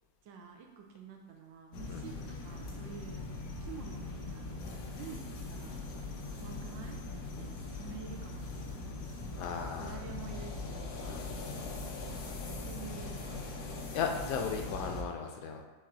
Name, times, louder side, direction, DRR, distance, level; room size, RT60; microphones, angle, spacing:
voice 1, 0.2-3.2 3.6-4.7 5.0-5.8 6.3-9.2 9.8-11.0 12.6-13.5, right 6 dB, 75° right, 2 dB, 1.3 m, -49 dB
sound 1, 1.7-15.0, left 3 dB, 70° left, 1.1 m, -41 dB
voice 2, 9.3-10.0 11.0-11.3 13.9-15.6, left 6 dB, 90° left, 3 dB, 1.4 m, -36 dB
7.1 x 2.8 x 2.5 m, 1.2 s
omnidirectional pair, 2.1 m